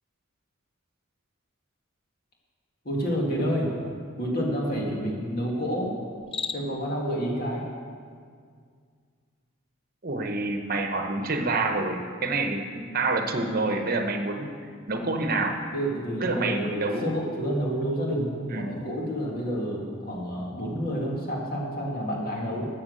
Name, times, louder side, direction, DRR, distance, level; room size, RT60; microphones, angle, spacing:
voice 1, 2.8-3.7 4.2-6.0 6.5-7.7 15.7-22.7, equal, 45° left, -2 dB, 2.1 m, -29 dB
Cricket, 6.1-6.9, left 5 dB, 25° left, 0.4 m, -35 dB
voice 2, 10.0-14.5 14.9-15.6 16.2-17.1 18.5-18.7, right 3 dB, 45° right, 5 dB, 1.0 m, -27 dB
13.0 x 7.3 x 6.4 m, 2.1 s
head